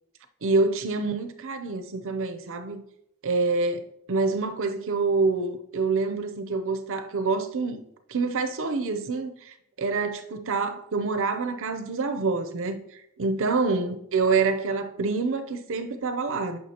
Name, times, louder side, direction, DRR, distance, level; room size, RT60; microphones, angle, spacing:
voice 1, 0.4-2.8 3.2-7.8 8.1-16.6, right 4 dB, 65° right, 0.7 m, -27 dB
9.3 x 5.8 x 2.9 m
head